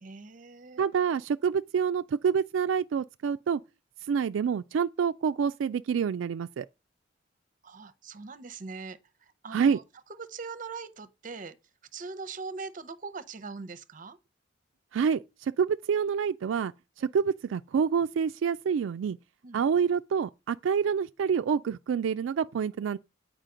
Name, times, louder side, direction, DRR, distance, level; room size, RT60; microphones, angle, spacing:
voice 1, 0.0-0.9 7.6-9.8 10.1-11.6 11.9-14.2 17.0-17.1 19.4-19.6, right 4 dB, 45° right, 0.7 m, -41 dB
voice 2, 0.8-3.6 4.0-6.7 9.5-9.8 14.9-16.7 17.0-19.2 19.5-23.0, right 6 dB, 80° right, 0.3 m, -27 dB
9.0 x 4.9 x 3.8 m
head